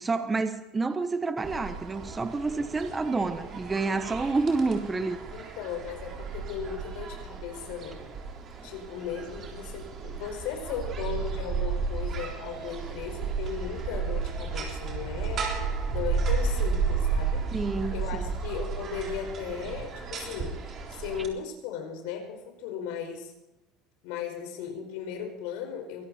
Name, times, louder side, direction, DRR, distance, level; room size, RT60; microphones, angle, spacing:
voice 1, 0.0-5.2 17.5-18.3, right 3 dB, 15° right, 9 dB, 1.1 m, -29 dB
sound 1, 1.4-21.3, right 5 dB, 40° right, 3.8 m, -33 dB
voice 2, 5.3-8.0 8.6-15.5 15.9-17.5 17.9-20.6 20.9-23.3 24.0-26.0, left 7 dB, 80° left, 4 dB, 5.1 m, -36 dB
23.5 x 13.5 x 4.4 m, 0.94 s
cardioid pair, 145°, 0 cm